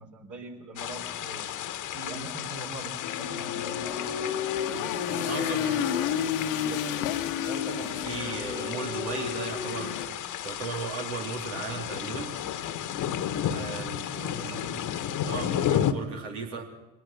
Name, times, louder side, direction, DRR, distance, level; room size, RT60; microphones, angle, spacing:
voice 1, 0.0-1.5 1.9-4.1 4.7-7.0 13.7-15.0 15.3-15.5, right 2 dB, 50° right, 1 dB, 4.2 m, -42 dB
sound 1, 0.8-15.9, left 10 dB, 55° left, 1.3 m, -33 dB
sound 2, 3.0-10.1, left 8 dB, 80° left, 1.3 m, -31 dB
voice 2, 5.3-5.8 7.5-10.0 10.4-12.4 13.5-14.6 15.2-16.6, right 4 dB, 75° right, 1 dB, 3.6 m, -36 dB
24.0 x 19.0 x 5.9 m, 1.0 s
hypercardioid pair, 65°, 38 cm